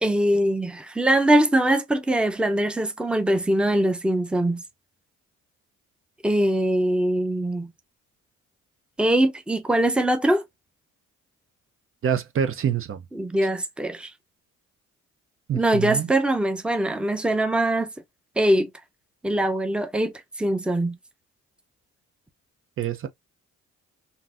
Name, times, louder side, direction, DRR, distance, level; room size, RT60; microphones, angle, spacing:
voice 1, 0.0-4.6 6.2-7.7 9.0-10.4 13.1-14.1 15.5-17.9 18.4-18.7 19.2-21.0, right 1 dB, 5° right, 0.6 m, -22 dB
voice 2, 12.0-13.0 15.5-16.1 22.8-23.1, right 8 dB, 45° right, 0.5 m, -26 dB
3.8 x 2.7 x 2.4 m
cardioid pair, 90°, 30 cm